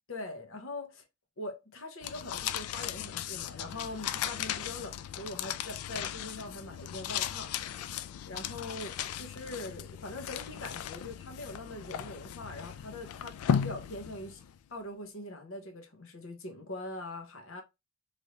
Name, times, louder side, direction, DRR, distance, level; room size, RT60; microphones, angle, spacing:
voice 1, 0.1-1.0 1.4-7.9 8.2-14.4 14.7-17.6, left 2 dB, 65° left, 0.8 m, -42 dB
sound 1, 2.0-14.6, left 9 dB, 85° left, 0.3 m, -36 dB
3.2 x 2.6 x 2.8 m
head